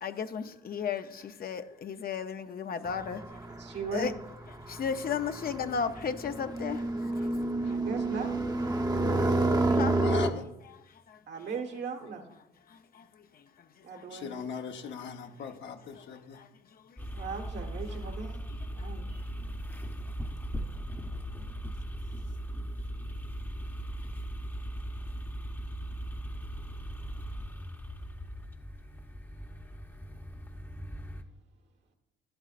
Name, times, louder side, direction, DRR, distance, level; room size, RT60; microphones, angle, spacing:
voice 1, 0.0-3.2 3.9-4.1 4.7-6.8 9.8-10.0 10.7-10.8 15.0-15.1 15.4-15.5 16.4-16.5, left 6 dB, 50° left, 8 dB, 0.7 m, -34 dB
sound 1, 2.8-10.3, right 2 dB, 20° right, 0.8 m, -30 dB
voice 2, 3.5-4.2 7.7-8.4 11.3-12.2 13.8-14.4 17.1-18.4 18.6-19.3, right 4 dB, 60° right, 4 dB, 1.5 m, -38 dB
voice 3, 9.9-10.4 14.1-16.4, left 6 dB, 70° left, 4 dB, 1.0 m, -39 dB
sound 2, 17.0-31.2, equal, 10° left, 0.9 m, -38 dB
12.0 x 11.0 x 2.5 m, 0.91 s
cardioid pair, 90°, 20 cm